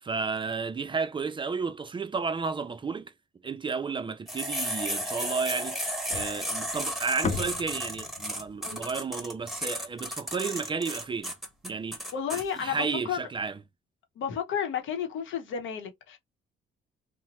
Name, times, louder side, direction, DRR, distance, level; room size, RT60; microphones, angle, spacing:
voice 1, 0.0-3.1 3.4-11.3 11.6-12.0 12.3-13.6, right 5 dB, 25° right, 0.4 m, -32 dB
sound 1, 4.3-12.4, equal, ahead, 0.9 m, -33 dB
sound 2, 6.1-10.4, left 5 dB, 40° left, 0.5 m, -38 dB
voice 2, 12.1-13.2 14.2-16.2, left 8 dB, 75° left, 0.8 m, -32 dB
2.9 x 2.0 x 2.8 m
cardioid pair, 90°, 20 cm